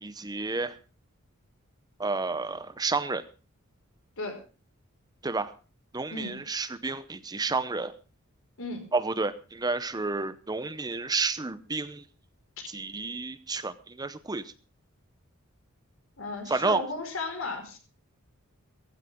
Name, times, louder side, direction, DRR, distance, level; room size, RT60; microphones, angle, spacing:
voice 1, 0.0-0.7 2.0-3.2 5.2-5.5 5.9-7.9 8.9-12.0 12.7-14.5 16.5-16.8, right 3 dB, 20° right, 13 dB, 0.7 m, -30 dB
voice 2, 6.1-6.4 8.6-8.8 12.6-12.7 16.2-17.8, left 3 dB, 65° left, 5 dB, 4.9 m, -35 dB
17.0 x 15.5 x 3.6 m, 0.34 s
head